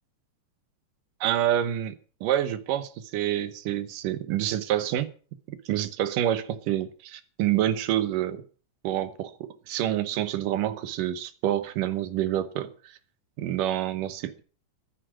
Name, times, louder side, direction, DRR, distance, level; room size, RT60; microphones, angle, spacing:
voice 1, 1.2-1.9 2.2-5.1 5.5-8.4 8.8-12.7 13.4-14.4, right 12 dB, 90° right, 2.7 m, -27 dB
14.0 x 10.0 x 6.1 m
omnidirectional pair, 3.7 m